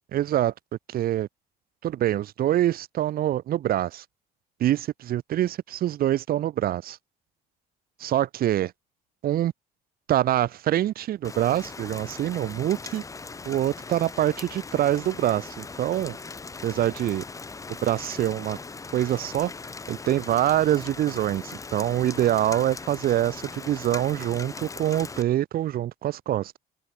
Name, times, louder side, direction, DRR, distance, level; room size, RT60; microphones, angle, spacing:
voice 1, 0.1-0.5 0.9-1.3 1.8-4.0 4.6-7.0 8.0-8.7 9.2-9.5 10.1-13.0 13.4-16.2 16.6-17.2 17.8-18.6 18.9-19.5 19.9-21.4 21.7-26.6, right 12 dB, 60° right, 1.4 m, -25 dB
Rain, 11.2-25.2, left 4 dB, 20° left, 1.0 m, -39 dB
open air
cardioid pair, 110°, 17 cm